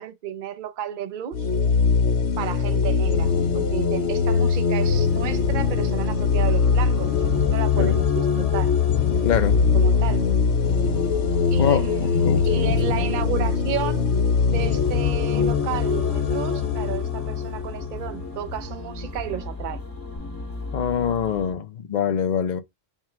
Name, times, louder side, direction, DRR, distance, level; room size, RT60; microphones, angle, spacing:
voice 1, 0.0-1.5 2.4-8.7 9.7-10.3 11.5-14.1 14.5-19.8, right 10 dB, 55° right, 0.7 m, -32 dB
sound 1, 1.3-18.7, left 6 dB, 90° left, 0.9 m, -22 dB
sound 2, 4.4-21.5, left 2 dB, 15° left, 0.9 m, -36 dB
voice 2, 9.2-9.6 11.6-12.7 20.7-22.6, left 8 dB, 50° left, 0.7 m, -24 dB
3.6 x 2.2 x 4.4 m
omnidirectional pair, 1.1 m